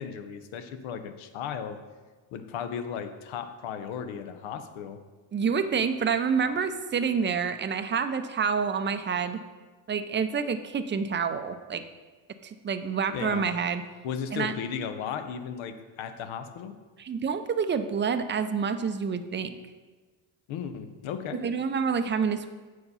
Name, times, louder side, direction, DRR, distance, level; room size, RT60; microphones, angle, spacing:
voice 1, 0.0-1.8 2.3-5.0 13.1-13.5 14.0-16.8 20.5-21.5, left 7 dB, 85° left, 9 dB, 0.8 m, -35 dB
voice 2, 5.3-9.4 9.9-11.8 12.4-13.8 14.3-14.6 17.0-19.6 21.3-22.5, right 6 dB, 25° right, 10 dB, 0.4 m, -28 dB
6.5 x 4.7 x 5.5 m, 1.3 s
cardioid pair, 95°, 47 cm